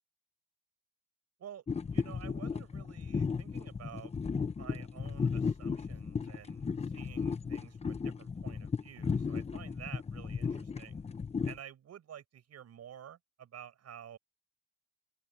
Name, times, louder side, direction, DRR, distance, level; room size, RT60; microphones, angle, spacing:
sound 1, 1.7-11.6, left 5 dB, 20° left, 0.9 m, -35 dB
voice 1, 1.9-4.1 4.6-11.0 11.4-14.2, right 9 dB, 50° right, 6.5 m, -51 dB
open air
cardioid pair, 145°, 34 cm